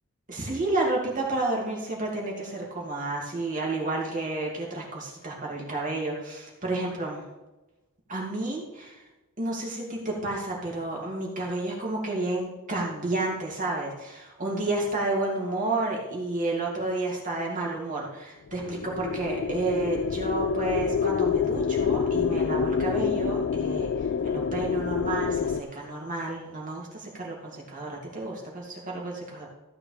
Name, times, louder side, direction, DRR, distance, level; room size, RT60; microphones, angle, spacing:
voice 1, 0.3-7.2 8.1-9.0 9.4-29.5, right 2 dB, 35° right, -3 dB, 2.5 m, -31 dB
sound 1, 18.5-25.6, left 6 dB, 50° left, 0.3 m, -27 dB
15.0 x 8.3 x 3.4 m, 1.1 s
head